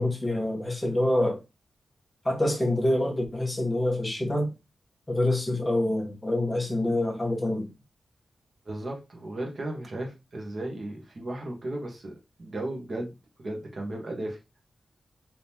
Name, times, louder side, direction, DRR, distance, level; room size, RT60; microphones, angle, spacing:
voice 1, 0.0-1.4 2.2-4.5 5.1-7.7, left 1 dB, 10° left, 1.0 m, -26 dB
voice 2, 8.6-14.4, right 1 dB, 45° right, 1.1 m, -35 dB
3.5 x 2.9 x 2.8 m
wide cardioid pair, 160°, 0 cm